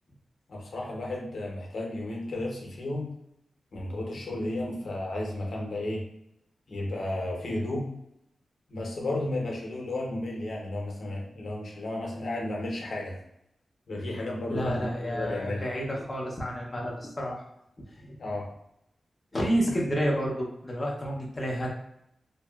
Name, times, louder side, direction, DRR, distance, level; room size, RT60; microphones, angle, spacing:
voice 1, 0.5-3.1 3.7-6.0 6.7-7.9 8.7-13.1 13.9-15.7 18.2-18.5, left 1 dB, 60° left, -1 dB, 0.7 m, -33 dB
voice 2, 14.5-17.4 18.0-18.2 19.3-21.7, equal, 20° left, -3 dB, 0.5 m, -30 dB
2.8 x 2.3 x 2.2 m, 0.78 s
wide cardioid pair, 170°, 0 cm